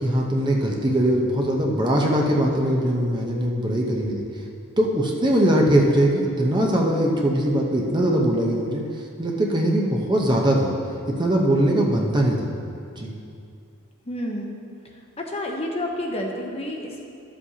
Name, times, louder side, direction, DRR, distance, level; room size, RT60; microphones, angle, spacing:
voice 1, 0.0-4.2 4.8-8.8 9.2-10.7 11.1-12.5 13.0-13.1, right 1 dB, 20° right, -1 dB, 0.8 m, -21 dB
voice 2, 14.1-14.5 15.2-17.0, left 1 dB, 30° left, 1 dB, 0.8 m, -29 dB
13.0 x 7.4 x 2.8 m, 2.5 s
head